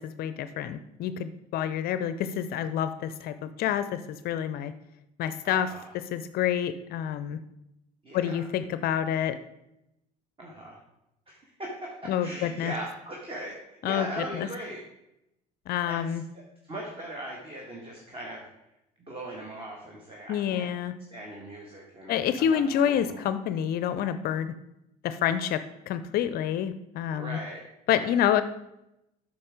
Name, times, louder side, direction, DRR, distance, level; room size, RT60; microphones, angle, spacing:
voice 1, 0.0-4.7 5.2-5.7 6.1-7.4 8.1-9.4 12.1-12.7 13.8-14.5 15.7-16.2 20.3-20.9 22.1-24.5 25.0-27.4 27.9-28.4, left 9 dB, 50° left, 12 dB, 0.5 m, -28 dB
voice 2, 5.4-5.9 8.0-8.4 10.4-10.8 11.3-14.8 15.9-16.2 16.7-18.4 19.0-20.7 21.1-23.2 27.1-27.6 27.9-28.2, right 1 dB, 25° right, -1 dB, 1.8 m, -39 dB
8.6 x 5.8 x 4.9 m, 0.86 s
figure-of-eight pair, 60°, 20 cm